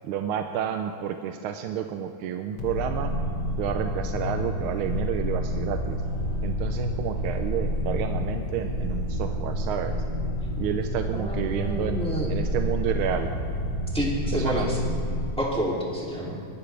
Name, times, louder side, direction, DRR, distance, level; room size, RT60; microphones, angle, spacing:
voice 1, 0.0-3.1 3.6-6.0 6.4-10.0 10.6-12.0 12.3-13.3 14.3-14.7 16.3-16.4, right 9 dB, 80° right, 6 dB, 1.5 m, -30 dB
sound 1, 2.6-15.3, equal, 50° left, 2.1 m, -29 dB
voice 2, 11.1-12.3 13.9-14.8 15.4-16.4, equal, 5° left, -5 dB, 2.5 m, -29 dB
22.0 x 13.0 x 3.3 m, 2.7 s
omnidirectional pair, 2.4 m